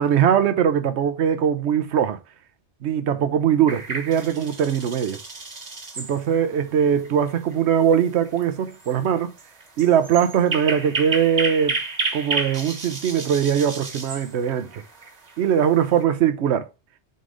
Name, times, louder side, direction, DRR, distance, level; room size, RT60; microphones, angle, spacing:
voice 1, 0.0-2.2 2.8-5.2 6.0-9.3 9.8-11.8 12.1-14.8 15.4-16.7, right 8 dB, 75° right, 1.0 m, -21 dB
sound 1, 3.7-16.0, right 3 dB, 40° right, 1.3 m, -32 dB
5.4 x 3.9 x 4.8 m
omnidirectional pair, 1.2 m